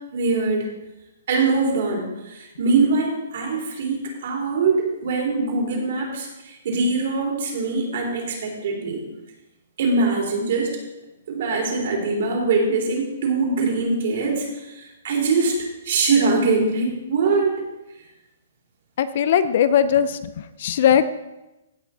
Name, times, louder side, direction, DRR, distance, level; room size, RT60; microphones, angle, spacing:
voice 1, 0.1-0.7 1.3-4.0 4.2-9.0 9.8-10.7 11.3-15.6 15.8-17.6, right 3 dB, 50° right, -1 dB, 3.1 m, -22 dB
voice 2, 19.0-21.0, left 9 dB, 40° left, 14 dB, 0.5 m, -19 dB
16.0 x 6.2 x 4.1 m, 0.99 s
hypercardioid pair, 175°, 0 cm